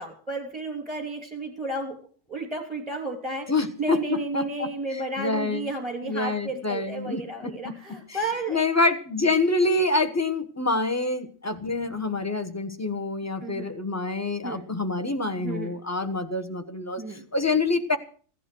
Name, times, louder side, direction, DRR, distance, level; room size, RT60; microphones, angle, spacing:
voice 1, 0.0-2.0 2.3-3.5 3.8-8.6 13.4-13.7 14.4-14.6 15.3-15.8 17.0-17.2, right 2 dB, 5° right, 2 dB, 2.6 m, -32 dB
voice 2, 3.5-5.7 6.0-7.7 8.5-18.0, left 2 dB, 15° left, 8 dB, 1.1 m, -26 dB
16.0 x 11.0 x 6.2 m, 0.44 s
omnidirectional pair, 1.4 m